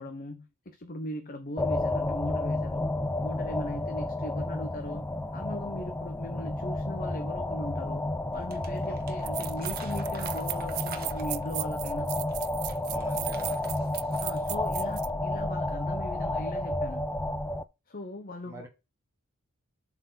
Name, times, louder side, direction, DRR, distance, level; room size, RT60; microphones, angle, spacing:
voice 1, 0.0-2.9 3.2-12.1 14.2-17.1 17.9-18.7, left 1 dB, 40° left, 0.9 m, -39 dB
sound 1, 1.6-17.6, left 1 dB, 10° left, 0.4 m, -31 dB
Crumpling crinkling, 8.3-11.6 12.2-14.4 14.7-14.9, right 5 dB, 45° right, 1.3 m, -48 dB
sound 2, 8.7-8.8 9.2-15.1, right 21 dB, 75° right, 0.4 m, -37 dB
voice 2, 12.9-13.6 18.4-18.7, right 1 dB, 15° right, 3.2 m, -45 dB
7.8 x 4.5 x 4.1 m
head